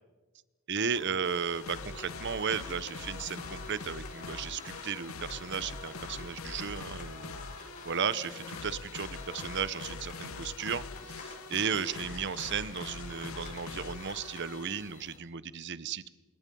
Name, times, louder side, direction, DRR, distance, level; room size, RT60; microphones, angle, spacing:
sound 1, 0.7-15.2, left 2 dB, 40° left, 4.4 m, -50 dB
voice 1, 0.7-16.1, right 6 dB, 55° right, 17 dB, 0.9 m, -35 dB
sound 2, 1.2-15.0, left 4 dB, 80° left, 1.0 m, -43 dB
25.5 x 21.5 x 5.4 m, 1.3 s
head